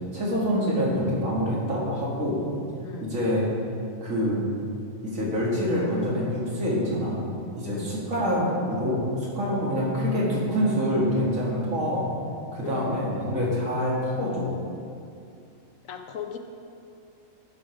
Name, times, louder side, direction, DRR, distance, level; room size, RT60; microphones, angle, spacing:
voice 1, 0.1-2.4 3.0-3.5 4.0-4.4 5.0-7.2 7.6-9.1 9.3-12.1 12.5-14.5, equal, 75° right, -5 dB, 2.4 m, -26 dB
voice 2, 7.6-8.0 12.6-13.0 15.9-16.4, left 8 dB, 80° left, 5 dB, 1.1 m, -37 dB
12.0 x 5.1 x 5.0 m, 2.5 s
omnidirectional pair, 1.4 m